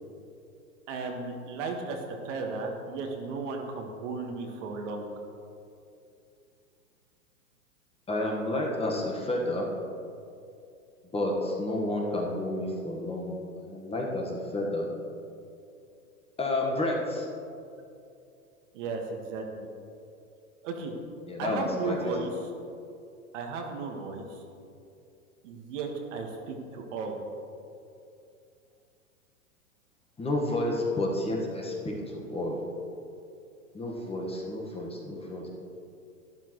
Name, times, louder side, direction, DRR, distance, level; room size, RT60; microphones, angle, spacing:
voice 1, 0.9-5.1 18.7-19.7 20.6-20.9 21.4-22.5 23.3-24.4 25.4-27.2, right 4 dB, 55° right, 2 dB, 1.8 m, -35 dB
voice 2, 8.1-9.7 11.1-13.3 13.6-14.9 16.4-17.3 21.3-22.1 30.2-32.6 33.7-35.5, left 1 dB, 15° left, -1 dB, 1.5 m, -30 dB
12.0 x 11.5 x 3.2 m, 2.5 s
hypercardioid pair, 115°, 43 cm